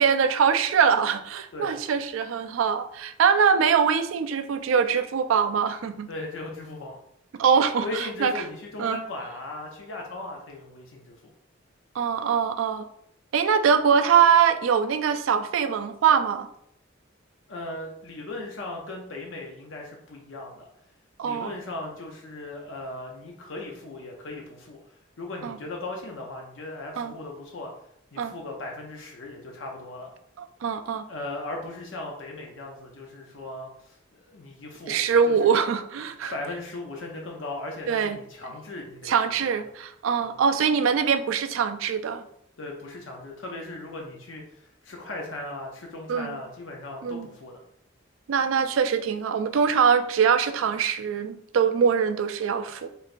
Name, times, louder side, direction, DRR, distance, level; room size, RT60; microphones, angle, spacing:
voice 1, 0.0-6.1 7.4-8.3 8.8-9.0 12.0-12.8 13.3-16.5 21.2-21.5 25.4-25.6 27.0-27.1 28.2-28.3 30.4-31.1 34.9-36.3 37.9-38.2 39.1-42.2 46.1-46.4 47.0-47.3 48.3-52.9, right 6 dB, 85° right, 9 dB, 0.4 m, -23 dB
voice 2, 6.1-7.0 7.8-11.3 17.5-20.7 21.2-27.7 28.1-30.1 31.1-35.0 35.3-35.5 36.3-39.5 40.2-40.3 42.6-47.6, left 2 dB, 70° left, 0 dB, 0.6 m, -38 dB
4.4 x 3.3 x 2.5 m, 0.71 s
head